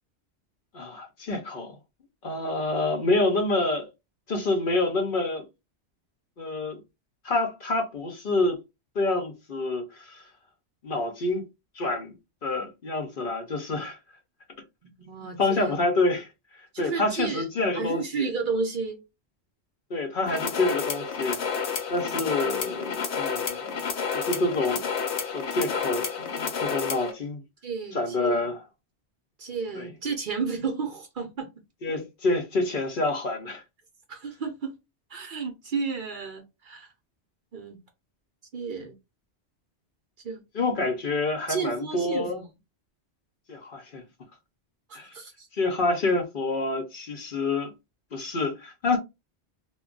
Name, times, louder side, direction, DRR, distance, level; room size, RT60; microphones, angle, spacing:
voice 1, 0.7-1.8 2.2-3.9 4.3-5.5 6.4-6.8 7.2-8.6 8.9-10.3 10.8-11.4 11.8-12.1 12.4-14.0 15.4-18.2 19.9-23.8 24.1-24.8 25.3-27.4 27.9-28.6 29.8-29.9 31.8-33.6 40.5-42.4 43.5-44.0 44.9-45.1 45.5-47.7 48.1-49.0, left 2 dB, 55° left, 0.7 m, -27 dB
voice 2, 14.8-15.7 16.7-17.5 17.7-19.0 21.9-22.0 27.6-28.4 29.4-31.5 34.1-34.8 35.1-36.9 37.5-37.8 38.5-39.0 40.2-40.4 41.5-42.4 44.9-45.5, right 5 dB, 55° right, 0.7 m, -32 dB
sound 1, 20.3-27.1, left 6 dB, 80° left, 0.9 m, -30 dB
2.2 x 2.1 x 3.7 m
omnidirectional pair, 1.1 m